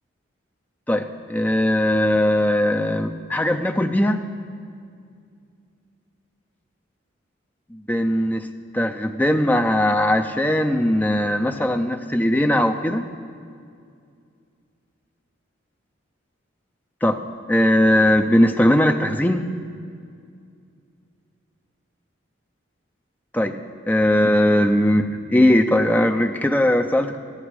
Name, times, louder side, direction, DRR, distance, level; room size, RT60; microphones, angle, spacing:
voice 1, 0.9-4.2 7.7-8.5 8.7-13.0 17.0-17.2 17.5-19.5 23.3-23.5 23.9-27.2, left 1 dB, 10° left, 5 dB, 0.4 m, -19 dB
14.0 x 9.7 x 4.7 m, 2.3 s
head